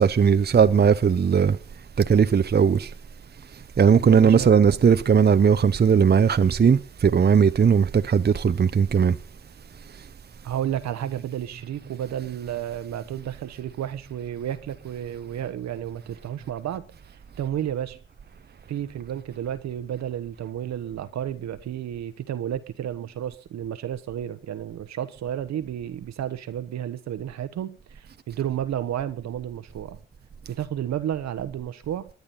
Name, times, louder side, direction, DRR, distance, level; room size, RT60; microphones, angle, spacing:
voice 1, 0.0-1.6 2.0-2.9 3.8-9.2, right 6 dB, 35° right, 0.8 m, -18 dB
voice 2, 4.0-4.8 10.4-16.8 17.4-18.0 18.7-30.0 30.5-32.1, right 10 dB, 65° right, 1.1 m, -32 dB
21.0 x 9.8 x 4.1 m
hypercardioid pair, 40°, 30 cm